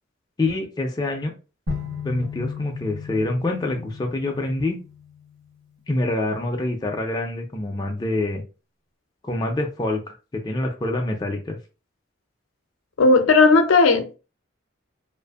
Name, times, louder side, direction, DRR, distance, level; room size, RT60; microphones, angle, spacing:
voice 1, 0.4-1.3 2.0-4.8 5.9-8.4 9.2-11.6, left 2 dB, 20° left, 2 dB, 0.3 m, -26 dB
sound 1, 1.7-5.7, left 5 dB, 75° right, 1.3 m, -35 dB
voice 2, 13.0-14.2, left 3 dB, 80° left, 7 dB, 0.5 m, -15 dB
2.5 x 2.4 x 2.3 m, 0.32 s
head